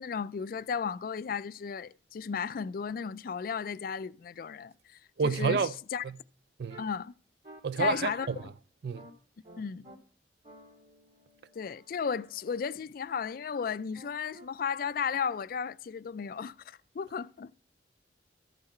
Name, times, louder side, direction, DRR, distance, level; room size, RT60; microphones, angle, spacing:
voice 1, 0.0-6.0 6.8-7.1 7.8-8.3 9.6-9.9 11.6-17.5, left 6 dB, 50° left, 0.3 m, -34 dB
voice 2, 5.2-5.7 6.0-6.1 6.6-6.8 7.6-8.4 8.8-9.0, right 5 dB, 60° right, 0.4 m, -29 dB
sound 1, 6.7-6.9 7.4-7.6 8.2-8.5 8.9-9.1 9.4-10.0 10.4-12.7 13.9-14.5, right 1 dB, 40° right, 2.7 m, -52 dB
13.5 x 5.8 x 4.3 m
head